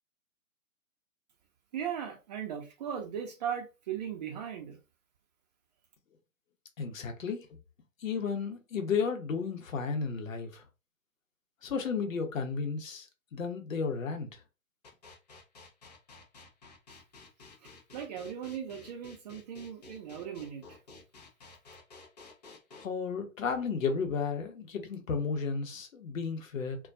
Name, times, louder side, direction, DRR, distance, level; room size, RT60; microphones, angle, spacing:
voice 1, 1.7-4.8 17.6-20.8, right 8 dB, 30° right, 0.6 m, -38 dB
voice 2, 6.8-7.5 8.0-10.6 11.6-14.4 22.8-26.8, left 5 dB, 65° left, 0.8 m, -33 dB
sound 1, 14.8-22.8, left 3 dB, 30° left, 0.4 m, -52 dB
2.3 x 2.2 x 2.5 m
figure-of-eight pair, 125°, 43 cm